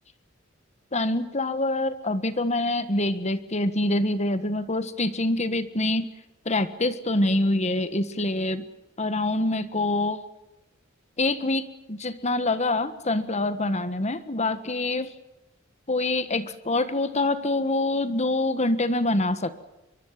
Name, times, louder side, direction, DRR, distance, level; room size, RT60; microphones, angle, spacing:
voice 1, 0.9-6.1 6.4-8.7 9.0-10.2 11.2-15.1 15.9-19.6, left 2 dB, 35° left, 12 dB, 1.5 m, -25 dB
24.0 x 24.0 x 7.5 m, 0.95 s
head